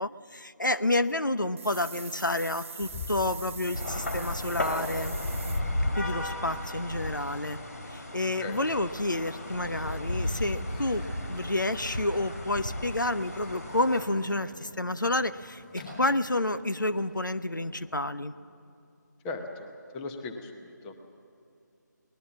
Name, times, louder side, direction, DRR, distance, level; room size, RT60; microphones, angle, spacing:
voice 1, 0.0-5.2 6.0-7.6 7.9-18.3, left 2 dB, 85° left, 12 dB, 0.8 m, -29 dB
sound 1, 1.6-5.6, right 4 dB, 40° right, 0.8 m, -43 dB
Microwave oven, 2.8-17.9, left 3 dB, 30° left, 7.0 m, -47 dB
sound 2, 3.7-14.1, left 1 dB, 55° left, 3.0 m, -34 dB
voice 2, 19.2-21.0, left 3 dB, 10° left, 5 dB, 0.8 m, -38 dB
23.0 x 19.5 x 7.3 m, 2.6 s
figure-of-eight pair, 155°, 10 cm